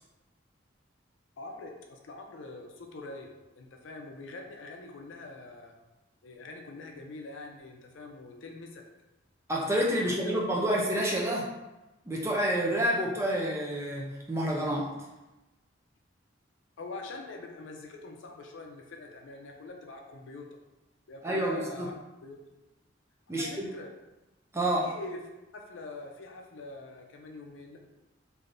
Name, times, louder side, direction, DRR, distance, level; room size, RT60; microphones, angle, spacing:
voice 1, 1.4-5.7 6.2-8.9 10.0-10.7 16.8-20.5 21.1-21.9 22.2-22.4 23.4-23.9 24.8-25.2 25.5-27.8, left 2 dB, 75° left, 2 dB, 0.5 m, -44 dB
voice 2, 9.5-11.5 12.1-14.9 21.2-21.9 23.3-23.7 24.5-24.9, right 1 dB, 15° right, -2 dB, 0.4 m, -28 dB
3.3 x 2.6 x 2.5 m, 1.0 s
head